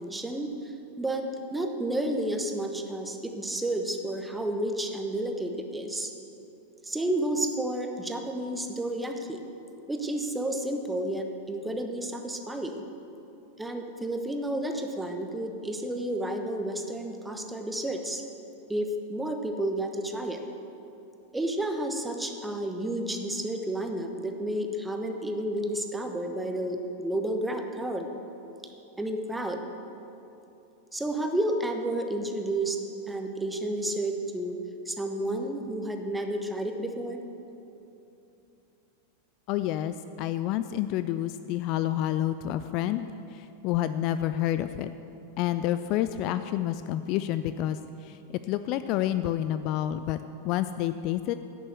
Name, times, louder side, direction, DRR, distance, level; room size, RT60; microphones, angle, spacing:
voice 1, 0.0-6.1 6.8-9.4 9.9-12.8 13.6-18.2 18.7-20.4 21.3-28.1 29.0-29.6 30.9-32.8 33.1-34.6 34.9-37.2, right 1 dB, 5° right, 5 dB, 1.0 m, -31 dB
voice 2, 39.5-44.9 45.4-51.3, left 12 dB, 40° left, 11 dB, 0.3 m, -29 dB
11.0 x 7.0 x 7.5 m, 2.9 s
figure-of-eight pair, 90°, 0 cm